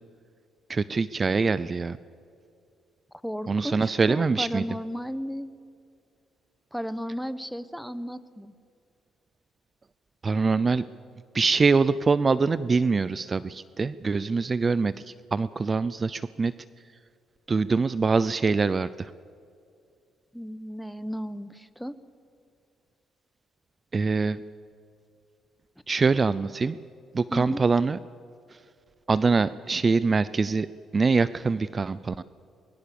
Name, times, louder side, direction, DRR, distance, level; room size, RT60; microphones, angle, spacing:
voice 1, 0.7-2.0 3.5-4.6 10.2-10.8 11.3-16.5 17.5-19.1 23.9-24.4 25.9-26.8 27.1-28.0 28.5-28.6 29.1-30.7 30.9-32.2, right 4 dB, 35° right, 16 dB, 0.5 m, -24 dB
voice 2, 3.2-5.5 6.7-8.5 20.3-21.9 27.3-27.6, equal, ahead, 14 dB, 1.1 m, -34 dB
23.0 x 22.0 x 7.0 m, 2.4 s
cardioid pair, 90°, 0 cm